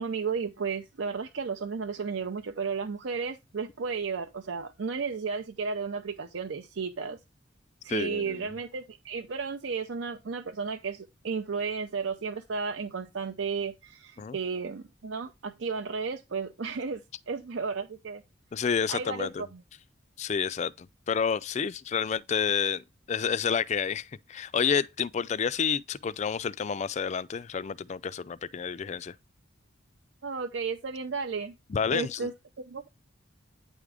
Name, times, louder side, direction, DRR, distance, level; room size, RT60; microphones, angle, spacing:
voice 1, 0.0-7.2 7.8-18.2 18.9-19.6 30.2-31.5 31.9-32.3 32.7-32.9, right 5 dB, 75° right, 0.6 m, -33 dB
voice 2, 7.9-8.4 14.2-14.4 18.5-19.5 20.2-29.2 31.7-32.3, left 6 dB, 35° left, 0.3 m, -29 dB
9.1 x 3.6 x 4.8 m
head